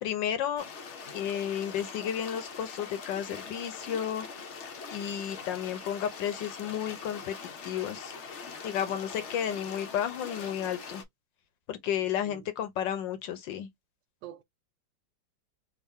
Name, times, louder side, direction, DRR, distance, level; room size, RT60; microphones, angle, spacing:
voice 1, 0.0-0.6 1.1-4.3 4.9-7.3 7.6-8.1 8.6-11.0 11.7-13.7, left 9 dB, 75° left, 1.4 m, -32 dB
sound 1, 0.6-11.0, left 5 dB, 55° left, 0.8 m, -43 dB
voice 2, 12.0-12.4 14.2-14.4, right 12 dB, 75° right, 1.3 m, -46 dB
3.5 x 2.5 x 3.5 m
omnidirectional pair, 2.1 m